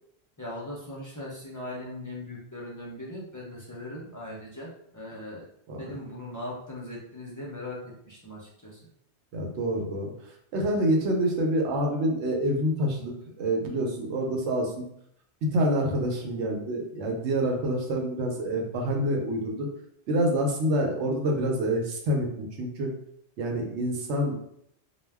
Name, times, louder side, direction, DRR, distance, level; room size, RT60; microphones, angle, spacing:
voice 1, 0.4-5.5 5.8-8.8, left 1 dB, 30° left, -5 dB, 0.3 m, -39 dB
voice 2, 9.3-10.1 10.5-14.8 15.4-19.7 20.1-22.9 23.4-24.3, right 1 dB, 85° right, 1 dB, 0.9 m, -27 dB
2.2 x 2.1 x 3.3 m, 0.71 s
omnidirectional pair, 1.1 m